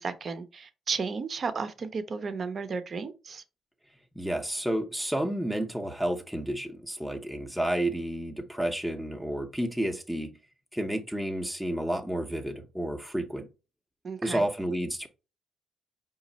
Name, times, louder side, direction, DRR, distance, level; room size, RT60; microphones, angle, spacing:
voice 1, 0.0-3.4 14.0-14.4, right 5 dB, 45° right, 0.6 m, -33 dB
voice 2, 4.2-10.3 10.7-13.4 14.2-15.1, right 1 dB, ahead, 0.6 m, -31 dB
5.0 x 2.4 x 4.0 m
cardioid pair, 90°, 0 cm